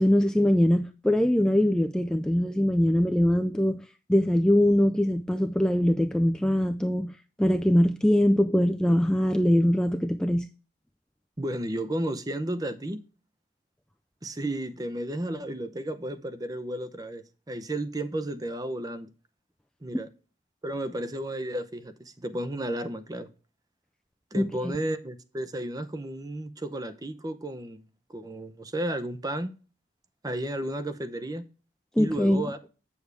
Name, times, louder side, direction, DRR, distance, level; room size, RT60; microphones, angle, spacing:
voice 1, 0.0-3.8 4.1-7.1 7.4-10.5 24.3-24.4 32.0-32.5, left 1 dB, 5° left, 0.3 m, -22 dB
voice 2, 11.4-13.0 14.2-19.1 19.8-20.1 20.6-23.3 24.3-27.8 28.1-29.5 30.2-31.4 32.0-32.6, right 1 dB, 20° right, 0.7 m, -33 dB
8.1 x 7.1 x 3.4 m
head